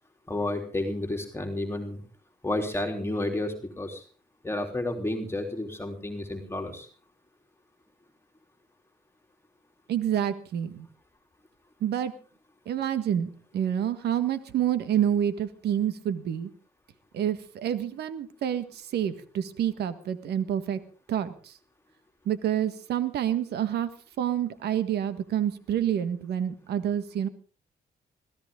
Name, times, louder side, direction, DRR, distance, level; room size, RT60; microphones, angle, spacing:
voice 1, 0.3-2.0 2.4-4.0 4.4-6.9, left 1 dB, 15° left, 3 dB, 3.5 m, -31 dB
voice 2, 9.9-10.9 11.8-12.1 12.6-16.5 17.1-20.8 21.1-21.5 22.2-23.9 24.2-27.3, right 10 dB, 80° right, 12 dB, 1.6 m, -28 dB
21.5 x 16.0 x 3.8 m, 0.38 s
supercardioid pair, 65°, 17 cm